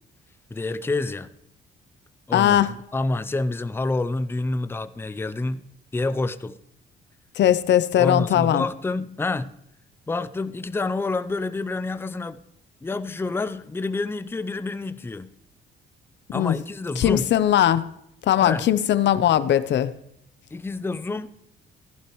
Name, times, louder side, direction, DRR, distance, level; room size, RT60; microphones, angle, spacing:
voice 1, 0.5-1.3 2.3-2.7 2.9-6.6 8.0-9.5 10.1-12.4 12.8-15.3 16.3-17.3 18.4-18.7 20.5-21.3, left 3 dB, 10° left, 0.5 m, -28 dB
voice 2, 2.3-2.7 7.4-8.6 16.3-16.5 17.0-17.8 18.2-19.9, left 11 dB, 65° left, 0.6 m, -19 dB
15.5 x 11.0 x 3.1 m
cardioid pair, 90°, 20 cm